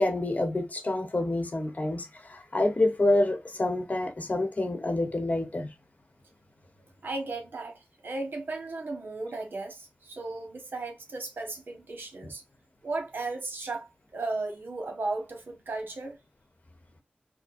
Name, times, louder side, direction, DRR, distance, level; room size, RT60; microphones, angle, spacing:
voice 1, 0.0-5.7, left 2 dB, 45° left, 1.0 m, -27 dB
voice 2, 7.0-12.4 12.8-16.2, right 3 dB, 75° right, 1.2 m, -35 dB
4.3 x 2.1 x 2.5 m
wide cardioid pair, 65°, 4 cm